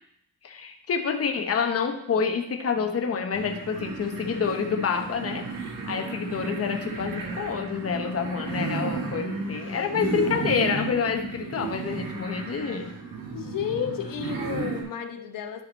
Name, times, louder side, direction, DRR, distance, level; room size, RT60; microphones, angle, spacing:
voice 1, 0.4-12.9, left 6 dB, 45° left, 4 dB, 1.1 m, -28 dB
sound 1, 3.3-14.8, right 4 dB, 75° right, 1.9 m, -33 dB
voice 2, 13.3-15.6, left 9 dB, 70° left, 5 dB, 1.1 m, -32 dB
11.0 x 5.1 x 4.1 m, 0.78 s
cardioid pair, 120°, 34 cm